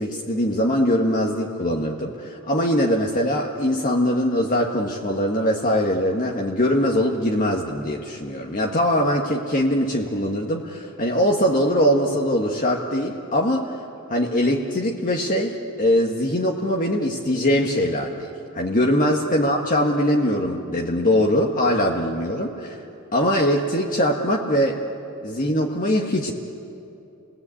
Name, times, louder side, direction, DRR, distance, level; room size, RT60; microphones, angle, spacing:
voice 1, 0.0-13.7 14.1-22.8 23.1-24.8 25.2-26.3, equal, 40° left, -1 dB, 1.6 m, -22 dB
30.0 x 20.0 x 8.5 m, 2.7 s
head